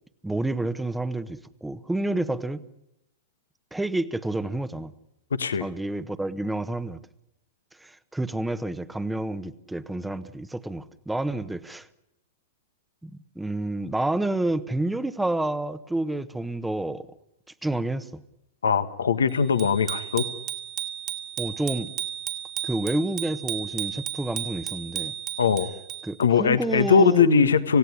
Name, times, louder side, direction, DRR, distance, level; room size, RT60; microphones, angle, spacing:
voice 1, 0.2-2.6 3.7-4.9 5.6-7.0 7.8-11.9 13.0-17.1 17.6-18.2 21.4-21.9 22.6-25.1 26.0-27.5, right 2 dB, 5° right, 1.2 m, -29 dB
voice 2, 18.6-20.2 25.4-25.7 26.2-27.8, left 6 dB, 75° left, 1.4 m, -21 dB
Bicycle bell, 19.6-26.2, right 11 dB, 35° right, 2.3 m, -34 dB
27.5 x 16.5 x 9.9 m
figure-of-eight pair, 105°, 0 cm